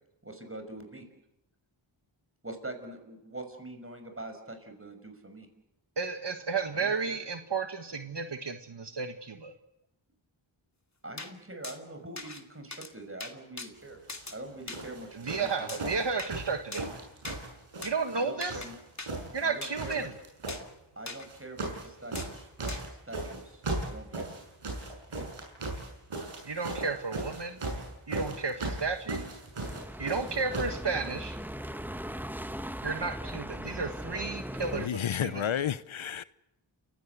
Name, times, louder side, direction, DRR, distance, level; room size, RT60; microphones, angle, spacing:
voice 1, 0.2-1.1 2.4-5.5 6.7-7.2 11.0-14.0 14.3-16.0 18.1-18.8 19.4-20.1 21.0-22.5 22.9-24.3 25.1-25.3, right 1 dB, 25° right, 6.1 m, -44 dB
voice 2, 6.0-9.5 15.2-16.9 17.8-18.6 19.3-20.1 26.4-27.6 28.1-29.3 30.0-31.4 32.8-35.4, right 4 dB, 55° right, 1.6 m, -33 dB
sound 1, 11.2-11.3 11.6-11.8 12.2-12.4 12.7-12.9 13.2-13.7 14.1-14.4 14.7-14.8 15.7-16.3 16.7-16.9 17.2-17.4 17.8-17.9 18.4-18.7 19.0-19.1 19.6-20.0 20.5-20.7 21.1-21.3 22.1-22.3 22.7-22.8, left 3 dB, 35° left, 2.5 m, -41 dB
sound 2, 14.1-14.3 14.7-18.2 18.5-19.5 19.7-20.6 21.2-21.9 22.1-30.8 31.6-31.7, right 2 dB, 80° right, 6.7 m, -37 dB
sound 3, 29.6-34.9, equal, 5° right, 1.1 m, -39 dB
voice 3, 34.8-36.2, left 9 dB, 70° left, 0.8 m, -31 dB
29.5 x 16.5 x 8.1 m
wide cardioid pair, 60°, 49 cm